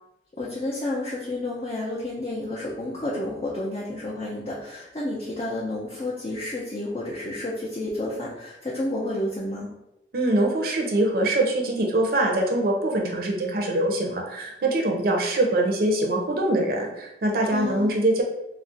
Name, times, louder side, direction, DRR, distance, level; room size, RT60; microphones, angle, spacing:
voice 1, 0.3-9.7 17.5-18.0, left 1 dB, 35° left, -5 dB, 0.4 m, -30 dB
voice 2, 10.1-18.2, right 1 dB, 55° right, 0 dB, 0.5 m, -23 dB
2.4 x 2.0 x 3.8 m, 0.86 s
head